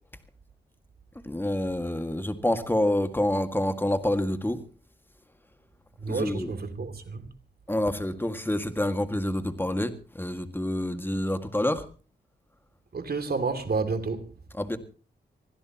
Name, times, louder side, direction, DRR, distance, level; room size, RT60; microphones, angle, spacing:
voice 1, 1.3-4.6 6.1-6.5 7.7-11.8 14.6-14.8, left 1 dB, 10° left, 1.9 m, -27 dB
voice 2, 6.0-7.3 12.9-14.3, right 4 dB, 55° right, 2.5 m, -30 dB
24.5 x 16.0 x 3.0 m
cardioid pair, 65°, 19 cm